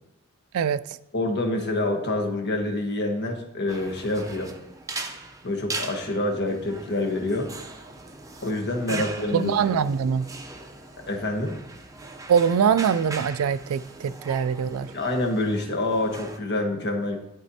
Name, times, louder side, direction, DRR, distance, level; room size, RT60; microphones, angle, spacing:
voice 1, 1.1-4.5 5.4-7.5 8.4-9.8 11.1-11.6 14.9-17.2, left 2 dB, 55° left, 1.2 m, -27 dB
sound 1, 3.7-16.4, right 3 dB, 15° right, 0.6 m, -40 dB
voice 2, 9.3-10.3 12.3-14.9, right 7 dB, 80° right, 0.3 m, -23 dB
12.0 x 4.1 x 2.8 m
head